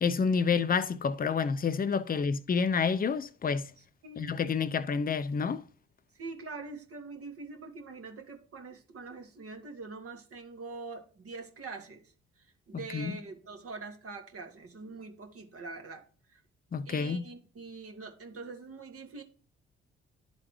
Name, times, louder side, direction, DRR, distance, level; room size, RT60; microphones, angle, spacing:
voice 1, 0.0-3.7 4.2-5.6 12.9-13.2 16.7-17.2, left 5 dB, 30° left, 0.6 m, -29 dB
voice 2, 3.8-4.3 6.2-12.1 12.7-16.0 16.3-16.4 16.8-19.2, right 3 dB, 50° right, 1.5 m, -44 dB
11.0 x 3.8 x 3.1 m
hypercardioid pair, 45°, 30 cm